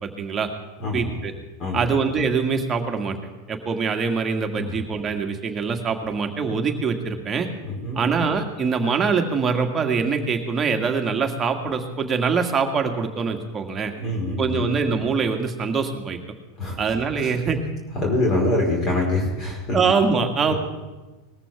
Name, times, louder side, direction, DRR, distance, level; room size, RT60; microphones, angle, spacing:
voice 1, 0.0-0.5 0.9-1.3 1.7-3.2 3.5-7.5 8.0-13.9 14.4-16.2 16.8-17.6 19.7-20.5, right 5 dB, 25° right, 3 dB, 1.8 m, -23 dB
voice 2, 0.8-1.1 1.6-1.9 4.6-4.7 7.6-8.0 13.9-14.6 16.6-16.8 17.2-17.4 17.9-19.8 20.4-20.6, left 2 dB, 35° left, -1 dB, 4.6 m, -25 dB
20.0 x 14.0 x 3.6 m, 1.2 s
hypercardioid pair, 90°, 0 cm